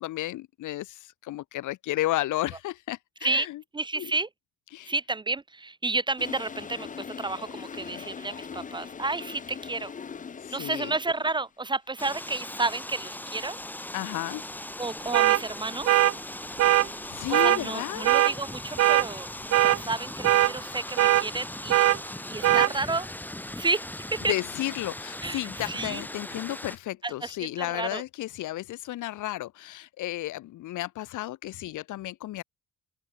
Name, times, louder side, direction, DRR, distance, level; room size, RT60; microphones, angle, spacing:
voice 1, 0.0-3.6 4.0-4.1 4.7-4.9 7.8-8.1 10.4-10.9 13.9-14.4 16.7-18.1 24.2-32.4, left 15 dB, 70° left, 5.7 m, -33 dB
voice 2, 3.7-4.3 4.8-6.9 7.2-9.9 10.5-13.6 14.8-16.0 17.3-19.3 19.5-21.9 22.3-23.1 23.5-24.3 25.2-26.0 27.0-28.0, right 3 dB, 15° right, 1.2 m, -31 dB
Toilet flush, 6.2-11.4, left 6 dB, 25° left, 2.2 m, -41 dB
sound 1, 12.0-26.8, left 1 dB, 5° left, 4.2 m, -39 dB
sound 2, 15.1-15.4 15.9-16.1 16.6-16.9 17.3-17.6 18.1-18.3 18.8-19.1 19.5-19.8 20.2-20.5 21.0-21.2 21.7-22.0 22.4-22.7, right 14 dB, 50° right, 0.8 m, -20 dB
open air
cardioid pair, 170°, 31 cm